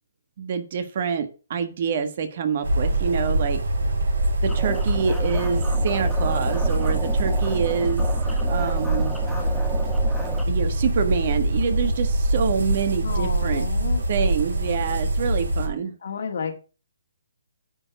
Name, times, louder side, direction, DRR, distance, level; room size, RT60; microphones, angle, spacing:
voice 1, 0.4-3.6 4.4-8.0 8.4-9.1 10.5-13.7 14.1-15.9, right 6 dB, 45° right, 9 dB, 1.5 m, -26 dB
sound 1, 2.6-15.7, right 1 dB, 85° right, 4.3 m, -24 dB
sound 2, 4.5-10.4, equal, ahead, 1.3 m, -35 dB
voice 2, 13.0-14.0 16.0-16.6, left 5 dB, 60° left, 5 dB, 2.2 m, -31 dB
9.7 x 4.5 x 6.1 m, 0.35 s
hypercardioid pair, 155°, 0 cm